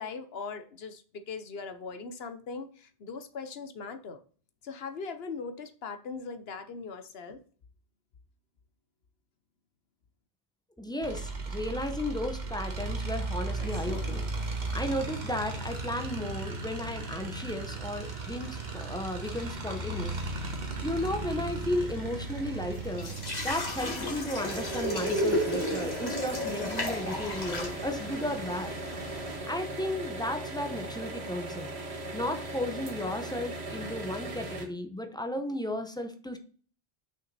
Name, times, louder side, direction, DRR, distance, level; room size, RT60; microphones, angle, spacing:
voice 1, 0.0-4.2 4.6-7.4, left 5 dB, 70° left, 1.0 m, -40 dB
voice 2, 10.8-20.2 20.8-23.2 23.4-28.7 29.5-31.7 32.1-36.4, left 1 dB, 5° left, 0.7 m, -34 dB
sound 1, 11.0-26.6, right 3 dB, 45° right, 1.3 m, -37 dB
sound 2, 13.6-29.4, left 1 dB, 40° left, 2.0 m, -37 dB
sound 3, 24.3-34.6, right 2 dB, 80° right, 1.8 m, -38 dB
6.3 x 5.7 x 4.0 m
omnidirectional pair, 1.1 m